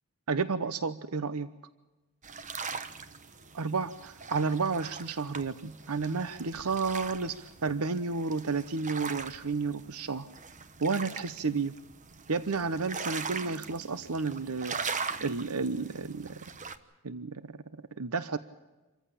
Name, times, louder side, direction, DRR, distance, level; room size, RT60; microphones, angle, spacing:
voice 1, 0.3-1.5 3.5-10.3 10.8-11.7 12.3-14.8 15.2-16.4 17.0-17.5 18.0-18.4, right 4 dB, 80° right, 14 dB, 0.9 m, -31 dB
sound 1, 2.2-16.8, right 5 dB, 35° right, 1.1 m, -41 dB
27.5 x 14.5 x 8.6 m, 1.1 s
head